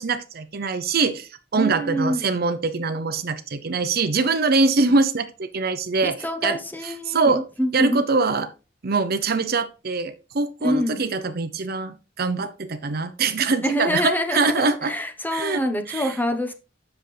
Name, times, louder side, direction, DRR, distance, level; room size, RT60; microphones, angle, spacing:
voice 1, 0.0-6.2 6.4-7.4 7.7-8.5 8.8-14.9 15.3-16.1, right 4 dB, 55° right, 10 dB, 0.7 m, -23 dB
voice 2, 1.6-2.3 6.0-8.0 10.6-11.0 13.6-16.5, equal, 10° left, 6 dB, 1.1 m, -26 dB
8.1 x 6.8 x 3.3 m, 0.32 s
head